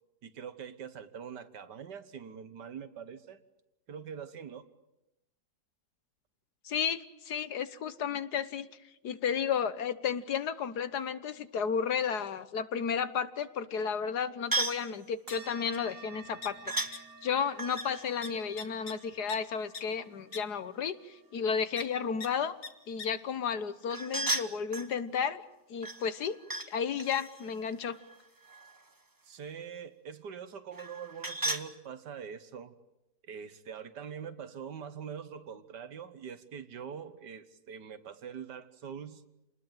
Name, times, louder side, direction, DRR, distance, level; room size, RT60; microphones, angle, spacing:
voice 1, 0.2-3.4 3.9-4.7 29.2-32.7 33.3-39.2, right 7 dB, 75° right, 11 dB, 1.9 m, -43 dB
voice 2, 6.6-8.7 9.0-16.6 16.8-22.6 22.9-25.4 25.7-26.4 26.7-28.0, left 7 dB, 70° left, 13 dB, 1.7 m, -33 dB
sound 1, 14.5-14.9 16.7-16.9 17.5-19.4 23.9-24.9 25.8-26.7 27.0-28.9 30.7-31.7, right 2 dB, 15° right, 1.1 m, -36 dB
sound 2, 15.3-24.2, right 4 dB, 30° right, 4.6 m, -53 dB
sound 3, 15.7-15.8 16.1-17.0 17.3-17.5 17.8-17.9 18.2-19.4 19.7-19.8 20.3-20.4 21.8-21.9 22.2-22.3 22.6-22.7 23.0-23.1, left 4 dB, 50° left, 2.2 m, -42 dB
28.0 x 20.0 x 9.1 m, 0.91 s
omnidirectional pair, 1.8 m